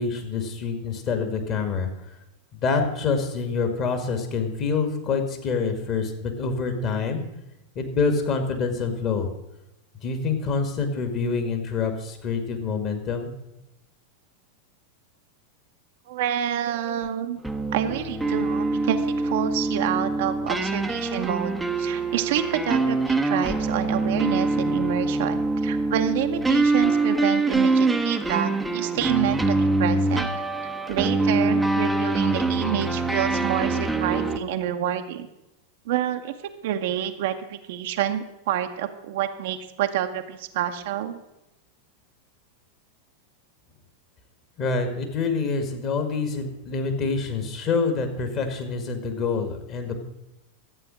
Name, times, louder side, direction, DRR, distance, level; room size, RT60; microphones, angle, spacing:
voice 1, 0.0-1.9 2.5-7.2 7.8-9.3 10.0-13.3 44.6-50.1, left 4 dB, 35° left, 6 dB, 2.0 m, -26 dB
voice 2, 16.1-17.4 17.7-30.3 30.9-35.3 35.9-36.3 36.6-41.2, right 10 dB, 55° right, 7 dB, 0.9 m, -28 dB
sound 1, 17.4-34.4, right 3 dB, 5° right, 0.8 m, -24 dB
12.5 x 8.3 x 6.4 m, 0.90 s
figure-of-eight pair, 90°, 0 cm